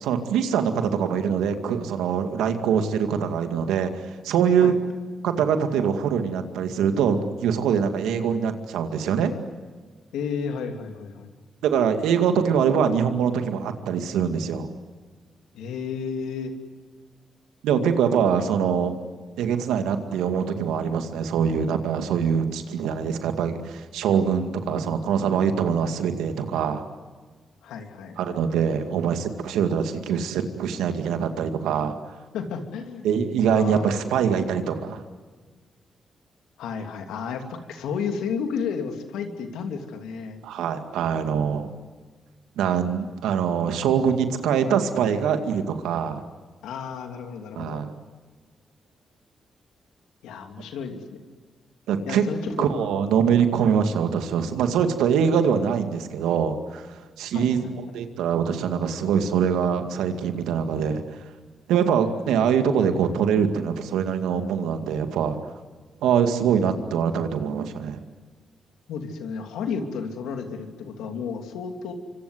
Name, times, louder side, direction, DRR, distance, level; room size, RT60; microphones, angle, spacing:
voice 1, 0.0-4.7 5.2-9.3 11.6-14.7 17.6-18.9 19.4-26.8 28.2-31.9 33.0-35.0 40.4-41.7 42.6-46.2 47.6-47.9 51.9-52.2 52.6-57.6 57.9-61.0 61.7-65.4 66.0-68.0, right 7 dB, 85° right, 7 dB, 2.2 m, -23 dB
voice 2, 10.1-11.3 15.5-16.5 27.6-28.4 32.3-33.1 33.5-34.1 36.6-40.4 46.6-47.8 50.2-51.0 52.1-52.6 57.3-57.7 68.9-71.9, left 6 dB, 85° left, 5 dB, 3.0 m, -32 dB
26.0 x 25.5 x 8.0 m, 1.5 s
supercardioid pair, 50°, 0 cm